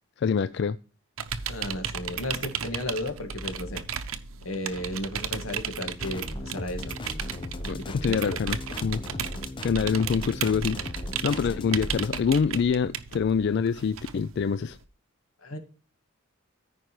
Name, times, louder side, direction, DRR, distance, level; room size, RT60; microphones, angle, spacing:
voice 1, 0.2-0.8 7.7-9.0 9.6-10.8 11.2-14.8, left 6 dB, 55° left, 0.3 m, -25 dB
sound 1, 1.2-14.8, right 7 dB, 85° right, 0.8 m, -35 dB
voice 2, 1.5-3.8 4.5-7.0 7.8-8.4 8.8-8.9 15.4-15.6, left 1 dB, 85° left, 1.9 m, -34 dB
sound 2, 6.0-12.2, left 1 dB, 25° left, 0.7 m, -37 dB
14.0 x 5.2 x 3.0 m
head